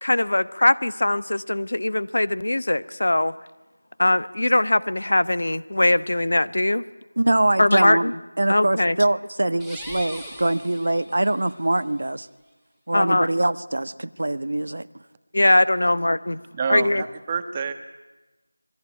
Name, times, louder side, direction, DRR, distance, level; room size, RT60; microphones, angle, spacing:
voice 1, 0.0-3.3 4.0-6.8 7.6-8.1 8.5-9.0 12.9-13.3 15.3-16.4 16.7-17.0, left 1 dB, 65° left, 16 dB, 1.1 m, -21 dB
voice 2, 7.2-8.1 8.4-12.3 12.9-14.9, right 1 dB, 65° right, 14 dB, 1.3 m, -23 dB
sound 1, 9.5-11.5, equal, 5° left, 2.6 m, -40 dB
voice 3, 16.5-17.7, right 6 dB, 15° right, 8 dB, 1.3 m, -27 dB
26.5 x 21.0 x 10.0 m, 1.1 s
figure-of-eight pair, 175°, 0 cm